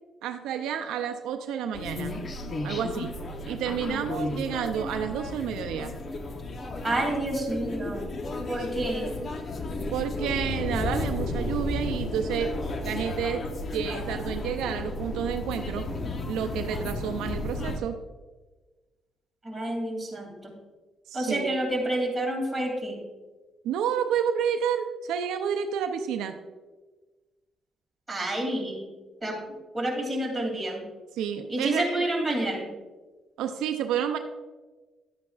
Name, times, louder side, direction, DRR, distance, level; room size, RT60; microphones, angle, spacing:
voice 1, 0.2-2.2 2.6-3.2 3.4-5.9 9.9-13.4 13.7-15.9 16.3-18.0 21.1-21.6 23.6-26.3 31.1-32.1 33.4-34.2, right 8 dB, 90° right, 6 dB, 0.5 m, -30 dB
sound 1, 1.7-17.8, left 2 dB, 45° left, 0.9 m, -33 dB
voice 2, 6.8-8.1 8.5-9.1 19.4-20.6 21.1-23.0 28.1-28.9 29.2-29.4 29.7-30.9 31.5-32.7, right 1 dB, 15° right, -2 dB, 2.8 m, -29 dB
11.0 x 8.3 x 2.4 m, 1.3 s
cardioid pair, 90°, 0 cm